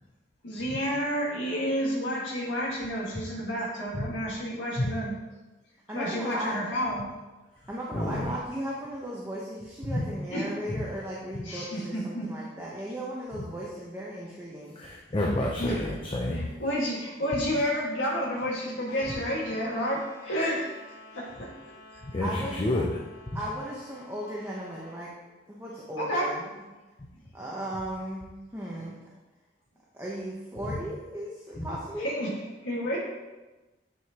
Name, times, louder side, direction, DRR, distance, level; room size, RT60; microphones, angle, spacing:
voice 1, 0.4-5.2 5.9-7.1 10.3-10.5 11.4-12.4 15.6-15.9 16.3-20.7 21.1-21.5 26.0-26.3 32.0-32.3 32.6-33.0, equal, 85° left, -4 dB, 1.7 m, -30 dB
voice 2, 5.9-6.6 7.7-14.7 22.2-22.6 23.3-25.1 25.5-26.4 27.3-28.2 28.5-29.0 29.9-32.1, equal, 15° right, -5 dB, 0.9 m, -36 dB
voice 3, 7.9-8.3 9.9-10.1 11.3-11.4 13.3-13.4 14.8-16.5 22.0-23.0 23.3-23.4 30.7-30.8 31.6-31.7, left 1 dB, 25° left, -2 dB, 0.6 m, -29 dB
sound 1, 18.8-25.1, left 2 dB, 60° left, 1.4 m, -50 dB
9.4 x 4.9 x 2.9 m, 1.1 s
head